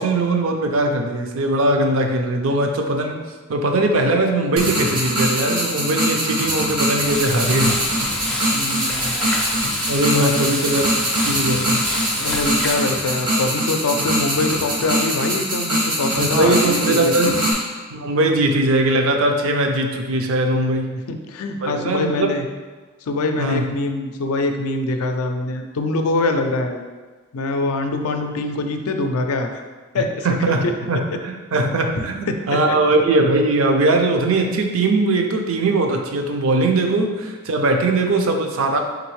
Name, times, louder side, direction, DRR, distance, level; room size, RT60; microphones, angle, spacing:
voice 1, 0.0-3.1 3.5-7.9 9.9-10.8 11.3-11.8 16.2-17.4 17.9-20.9 21.6-22.3 23.4-23.7 29.9-32.2 32.5-38.8, right 2 dB, 65° right, 4 dB, 0.4 m, -20 dB
sound 1, 4.6-17.5, equal, 85° right, 1.2 m, -22 dB
Frying (food), 6.9-12.9, left 1 dB, 5° left, 0.4 m, -28 dB
voice 2, 8.5-9.1 10.1-10.4 12.2-17.4 20.5-22.4 23.1-26.8 27.3-29.5 29.9-30.5 32.3-32.4 32.7-32.8, left 2 dB, 80° left, 6 dB, 0.4 m, -24 dB
3.8 x 3.4 x 3.1 m, 1.3 s
head